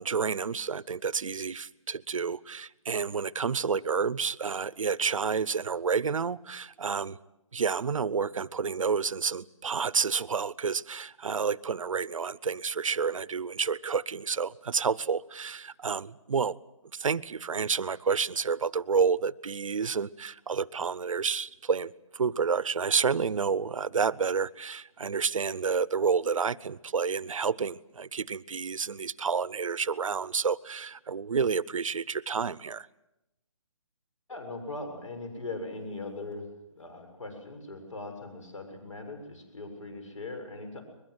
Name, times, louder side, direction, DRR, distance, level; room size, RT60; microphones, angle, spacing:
voice 1, 0.0-7.2 7.5-16.6 16.9-32.9, right 5 dB, 75° right, 0.8 m, -29 dB
voice 2, 34.3-36.5 36.8-40.8, left 2 dB, 70° left, 7.2 m, -40 dB
22.0 x 22.0 x 7.9 m
hypercardioid pair, 170°, 17 cm